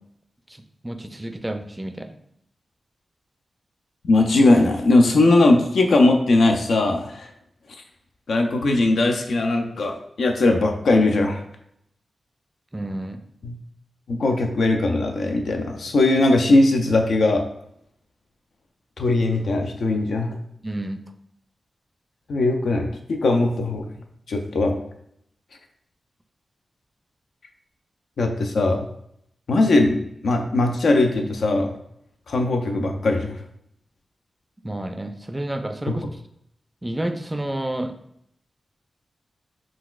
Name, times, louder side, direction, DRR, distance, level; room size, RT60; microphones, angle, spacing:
voice 1, 0.5-2.2 12.7-13.2 20.6-21.0 34.6-36.0 36.8-37.9, right 1 dB, 15° right, 7 dB, 0.4 m, -30 dB
voice 2, 4.0-7.3 8.3-11.4 13.4-13.6 14.1-17.4 19.0-20.4 22.3-23.9 24.3-24.7 28.2-28.9 29.5-31.8 32.3-33.4 35.9-36.0, left 2 dB, 80° left, 3 dB, 0.4 m, -19 dB
3.8 x 2.3 x 2.3 m, 0.73 s
cardioid pair, 55°, 0 cm